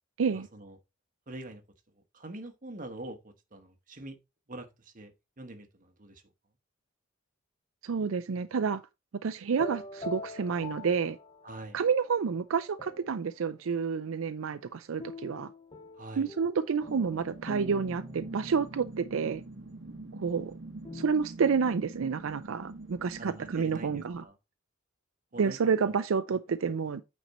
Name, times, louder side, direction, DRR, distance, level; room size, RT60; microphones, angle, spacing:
voice 1, 0.3-0.8 1.3-1.6 2.1-4.2 4.5-6.2 11.4-11.8 16.0-16.3 23.2-24.3 25.3-26.0, right 2 dB, 40° right, 1.2 m, -45 dB
voice 2, 7.8-8.8 9.2-11.2 11.7-15.5 16.2-19.4 20.2-20.6 20.9-24.2 25.4-27.0, right 6 dB, 80° right, 0.5 m, -29 dB
sound 1, 9.5-11.9 12.5-13.4 15.0-21.1, left 2 dB, 25° left, 0.7 m, -45 dB
Light Synthetic Wind Noise, 16.9-24.3, right 2 dB, 65° right, 1.0 m, -45 dB
9.1 x 4.3 x 4.2 m
head